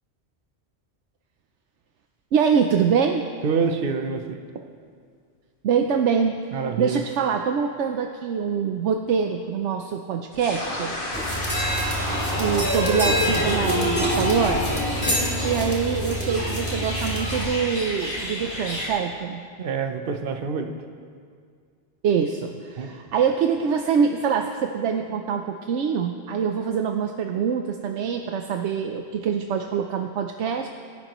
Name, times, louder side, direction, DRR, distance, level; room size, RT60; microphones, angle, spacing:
voice 1, 2.3-3.2 5.6-6.4 6.8-10.9 12.4-14.7 15.1-19.4 22.0-30.7, right 6 dB, 80° right, 4 dB, 1.0 m, -24 dB
voice 2, 3.4-4.4 6.5-7.0 19.6-20.7 22.8-22.9, right 5 dB, 55° right, 6 dB, 1.0 m, -26 dB
sound 1, 10.3-17.1, left 1 dB, 50° left, 2.1 m, -29 dB
sound 2, 11.1-17.4, equal, 10° left, 3.0 m, -27 dB
sound 3, 11.2-18.9, left 1 dB, 65° left, 4.4 m, -34 dB
25.5 x 11.5 x 3.1 m, 2.2 s
omnidirectional pair, 1.2 m